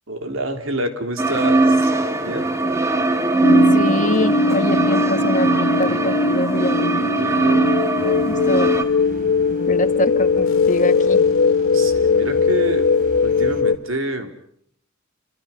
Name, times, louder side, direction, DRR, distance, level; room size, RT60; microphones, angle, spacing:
voice 1, 0.1-1.9 2.2-2.5 7.2-7.8 11.7-12.9 13.2-14.3, right 1 dB, 75° right, 5 dB, 3.4 m, -27 dB
sound 1, 1.2-8.8, right 2 dB, 15° right, 1.9 m, -20 dB
sound 2, 3.4-13.8, left 4 dB, 80° left, 1.0 m, -19 dB
voice 2, 3.7-6.9 8.0-8.7 9.7-11.3, left 1 dB, 40° left, 8 dB, 1.6 m, -24 dB
sound 3, 8.0-13.6, right 1 dB, 45° right, 3.6 m, -40 dB
29.0 x 26.0 x 5.7 m, 0.67 s
head